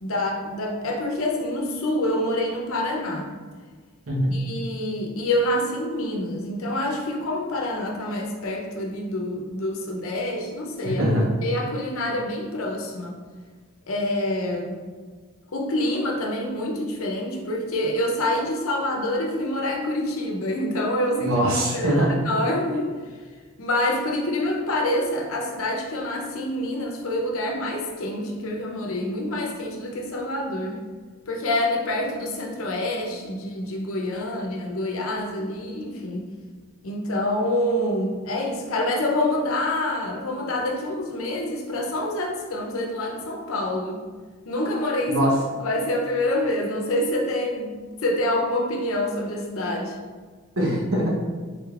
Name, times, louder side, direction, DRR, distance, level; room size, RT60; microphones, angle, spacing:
voice 1, 0.0-3.3 4.3-11.0 11.4-13.2 13.9-14.8 15.5-21.3 21.7-22.9 23.6-30.8 31.3-36.2 36.8-44.0 44.5-45.3 45.6-47.7 48.0-50.0, left 1 dB, 75° left, 1 dB, 0.7 m, -26 dB
voice 2, 4.1-4.4 10.8-11.3 21.2-22.2 45.1-45.4 50.6-51.2, equal, 80° right, -3 dB, 1.1 m, -22 dB
4.9 x 3.7 x 2.4 m, 1.5 s
head